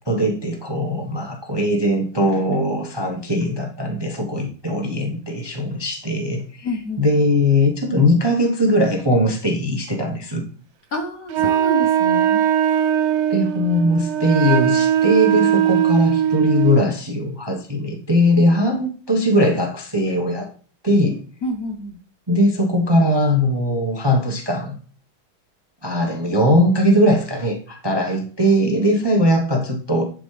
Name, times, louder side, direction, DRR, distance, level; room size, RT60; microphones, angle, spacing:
voice 1, 0.1-6.7 7.0-10.5 13.3-20.5 20.8-21.2 22.3-24.7 25.8-30.0, equal, 20° right, 2 dB, 0.7 m, -20 dB
voice 2, 6.6-7.0 10.9-12.4 21.4-22.0, left 2 dB, 55° left, 4 dB, 1.1 m, -28 dB
Wind instrument woodwind instrument, 11.3-16.8, right 10 dB, 90° right, 1.5 m, -19 dB
11.0 x 5.0 x 3.4 m, 0.43 s
omnidirectional pair, 2.3 m